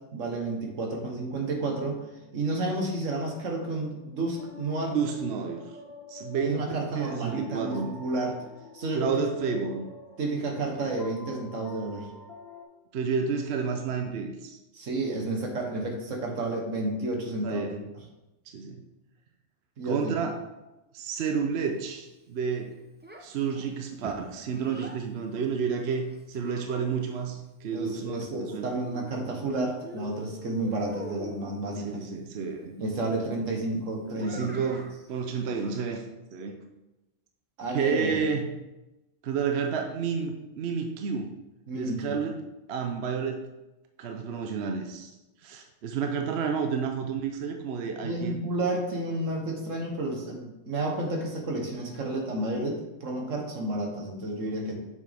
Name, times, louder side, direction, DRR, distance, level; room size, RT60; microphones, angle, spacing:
voice 1, 0.1-2.0 2.3-5.0 6.4-8.4 8.7-9.3 10.2-12.1 14.7-17.7 19.8-20.2 27.7-32.1 32.8-34.6 37.6-38.2 41.7-42.2 48.0-54.7, right 2 dB, 80° right, 2 dB, 1.6 m, -31 dB
sound 1, 0.8-12.6, left 3 dB, 55° left, 1.2 m, -48 dB
voice 2, 4.9-5.6 6.1-6.7 6.9-7.9 8.9-9.9 10.8-10.9 12.9-14.6 17.4-17.8 18.5-18.8 19.8-20.4 20.9-22.7 23.2-28.7 31.8-32.8 34.2-36.0 36.3-36.6 37.7-38.5 39.2-41.3 41.7-42.3 42.7-43.4 44.0-45.1 45.4-48.4, right 6 dB, 60° right, 4 dB, 0.9 m, -30 dB
Child speech kid speaking, 23.0-25.0 25.9-27.2 28.3-29.5 29.8-31.6 34.1-35.0, right 1 dB, 15° right, 0.3 m, -43 dB
7.2 x 6.2 x 3.4 m, 0.99 s
omnidirectional pair, 1.3 m